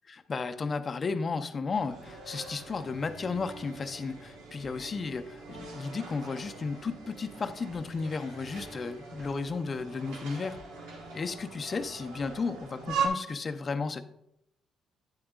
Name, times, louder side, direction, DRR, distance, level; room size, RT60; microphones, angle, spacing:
voice 1, 0.1-10.6 11.1-14.0, left 4 dB, 40° left, 9 dB, 0.6 m, -34 dB
sound 1, 1.7-13.1, right 5 dB, 85° right, 1.3 m, -41 dB
9.7 x 8.5 x 2.4 m, 0.80 s
supercardioid pair, 70°, 0 cm